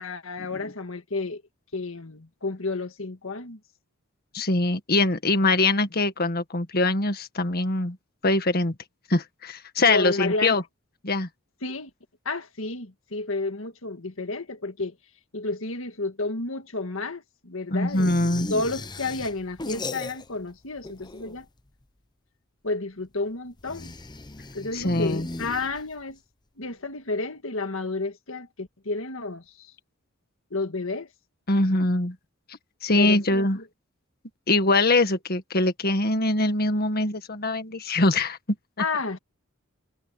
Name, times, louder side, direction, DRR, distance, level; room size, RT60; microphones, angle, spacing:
voice 1, 0.0-1.4 1.7-3.6 9.9-10.6 11.6-11.9 12.3-14.9 15.3-18.2 18.5-21.5 22.6-23.9 24.5-26.2 26.6-29.7 30.5-31.1 33.0-33.6 38.8-39.2, left 3 dB, 70° left, 1.9 m, -31 dB
voice 2, 4.3-8.0 8.2-8.8 9.1-10.6 11.0-11.3 17.7-18.5 24.7-25.3 31.5-32.2 32.8-33.6 34.5-38.4, left 2 dB, 50° left, 1.8 m, -23 dB
sound 1, 17.9-20.5 20.8-21.6 23.6-26.1, left 2 dB, 20° left, 0.8 m, -37 dB
head